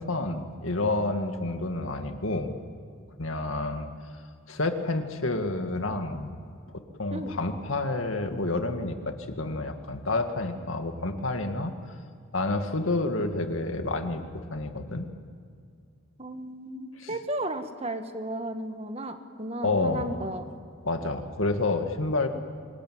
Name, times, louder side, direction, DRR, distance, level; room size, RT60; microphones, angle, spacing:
voice 1, 0.0-2.5 3.2-3.9 4.5-6.4 7.0-11.7 12.3-14.3 14.5-15.1 17.0-17.1 19.6-20.2 20.8-22.3, left 2 dB, 85° left, 6 dB, 2.1 m, -29 dB
voice 2, 16.2-20.4, right 1 dB, 30° right, 8 dB, 1.4 m, -34 dB
25.0 x 21.0 x 9.3 m, 2.3 s
head